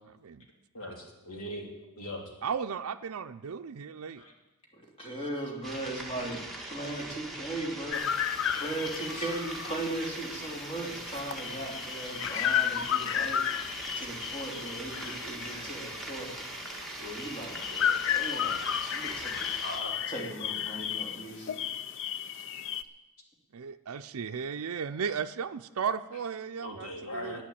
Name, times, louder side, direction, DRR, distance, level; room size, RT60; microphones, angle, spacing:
voice 1, 0.7-1.7 2.0-2.2 4.2-4.3 9.1-9.3 18.6-19.0 19.6-19.9 26.6-27.4, left 1 dB, 80° left, 1 dB, 3.0 m, -40 dB
voice 2, 2.4-4.2 23.5-27.4, right 6 dB, 75° right, 6 dB, 0.5 m, -35 dB
voice 3, 4.7-6.4 6.7-8.3 8.6-16.3 17.0-18.6 18.9-19.5 20.1-21.7, right 2 dB, 25° left, -2 dB, 3.2 m, -38 dB
sound 1, 5.6-19.8, right 2 dB, ahead, 1.8 m, -41 dB
sound 2, 7.9-22.8, left 9 dB, 60° left, 0.5 m, -33 dB
11.5 x 9.1 x 8.5 m, 1.0 s
head